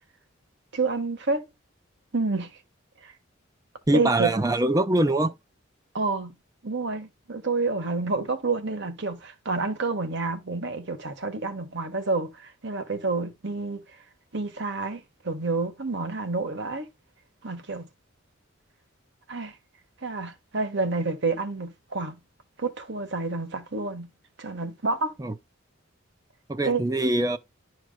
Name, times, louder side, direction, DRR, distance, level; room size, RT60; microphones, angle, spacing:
voice 1, 0.7-1.5 2.1-2.5 3.0-3.1 3.9-4.3 5.9-6.3 6.6-13.8 14.3-16.9 17.4-17.9 19.3-19.6 20.0-22.2 22.6-24.1 24.4-25.1 26.6-26.8, right 3 dB, 60° right, 1.3 m, -29 dB
voice 2, 3.9-5.3 25.2-25.3 26.5-27.4, right 1 dB, 20° right, 0.5 m, -23 dB
11.5 x 4.6 x 2.2 m
head